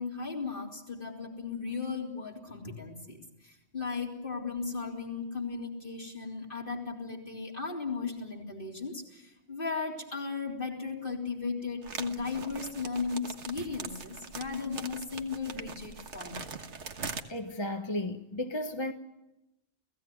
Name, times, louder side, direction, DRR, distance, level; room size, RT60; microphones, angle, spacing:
voice 1, 0.0-16.5, left 4 dB, 50° left, 4.0 m, -36 dB
sound 1, 11.8-17.2, right 5 dB, 90° right, 1.7 m, -42 dB
voice 2, 17.3-18.9, left 1 dB, 25° left, 1.2 m, -34 dB
30.0 x 16.5 x 9.4 m
omnidirectional pair, 1.1 m